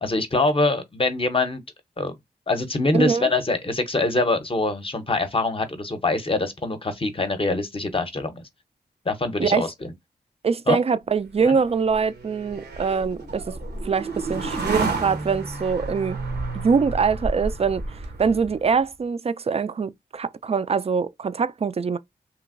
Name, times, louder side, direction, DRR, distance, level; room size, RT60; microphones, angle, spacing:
voice 1, 0.0-1.6 2.0-2.1 2.5-8.4 9.1-9.9 10.7-10.8 11.4-11.5, left 2 dB, 30° left, 0.7 m, -24 dB
voice 2, 10.4-13.5 13.8-16.2 16.5-17.8 18.2-22.0, right 5 dB, 35° right, 0.4 m, -23 dB
sound 1, 11.3-18.7, right 3 dB, 75° right, 0.8 m, -31 dB
3.0 x 2.5 x 2.5 m
cardioid pair, 50°, 17 cm